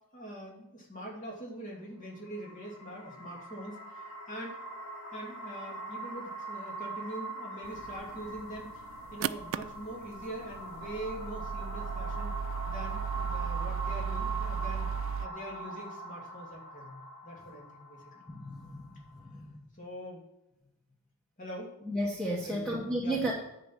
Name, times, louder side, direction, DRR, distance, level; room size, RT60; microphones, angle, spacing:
voice 1, 0.1-4.6 5.1-8.8 9.1-12.3 12.6-14.9 15.2-18.1 19.8-20.2 21.4-21.7 22.4-23.3, right 1 dB, 35° left, -2 dB, 2.7 m, -43 dB
sound 1, 2.1-19.3, right 2 dB, 85° left, 2.8 m, -42 dB
sound 2, 7.6-15.3, right 7 dB, 60° right, 0.3 m, -37 dB
voice 2, 18.3-18.9 19.3-19.5 21.9-23.3, right 1 dB, 5° left, -2 dB, 1.0 m, -32 dB
10.0 x 5.3 x 7.4 m, 0.90 s
head